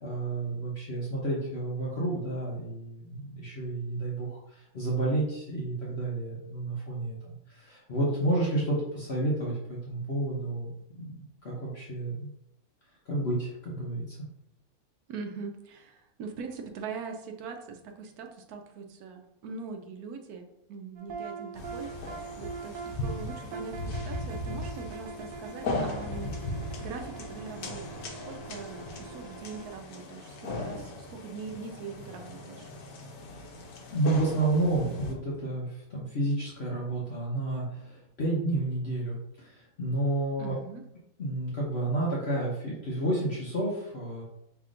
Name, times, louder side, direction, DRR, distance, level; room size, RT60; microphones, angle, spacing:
voice 1, 0.0-11.1 11.4-12.3 13.1-14.2 33.9-40.5 41.2-44.2, right 2 dB, 50° left, -5 dB, 1.1 m, -30 dB
voice 2, 15.1-26.3 26.8-32.7 40.4-40.8, right 5 dB, 85° right, 4 dB, 1.1 m, -42 dB
sound 1, 21.0-29.8, right 4 dB, 65° right, 0.5 m, -43 dB
sound 2, 21.5-35.1, left 2 dB, 80° left, 1.2 m, -38 dB
5.7 x 3.3 x 2.5 m, 0.82 s
omnidirectional pair, 1.6 m